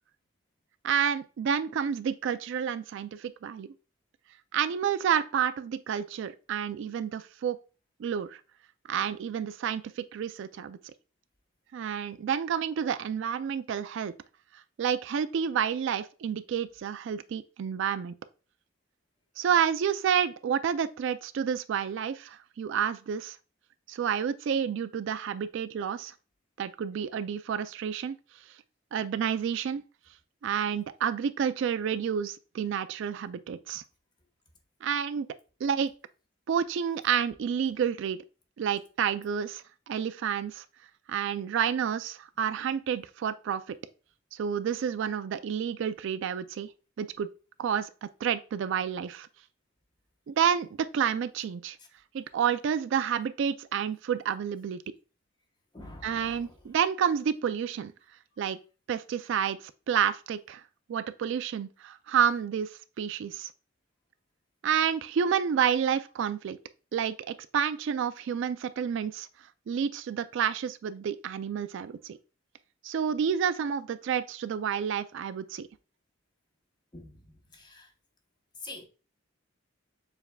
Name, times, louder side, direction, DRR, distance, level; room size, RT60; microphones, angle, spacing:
voice 1, 0.8-3.7 4.5-7.6 8.0-8.4 8.9-10.8 11.7-14.1 14.8-18.1 19.4-23.4 23.9-26.1 26.6-28.2 28.9-29.8 30.4-33.8 34.8-35.3 35.6-35.9 36.5-38.2 38.6-40.6 41.1-43.8 44.3-46.7 47.0-47.3 47.6-49.3 50.3-51.8 52.1-54.8 56.0-57.9 58.4-58.6 58.9-59.6 59.9-60.6 60.9-62.7 63.0-63.5 64.6-66.6 66.9-69.3 69.7-72.2 72.8-75.7, right 8 dB, 65° right, 0.3 m, -29 dB
voice 2, 55.7-56.6 76.9-77.9 78.6-78.9, left 2 dB, 25° left, 0.9 m, -46 dB
6.9 x 3.4 x 2.2 m
head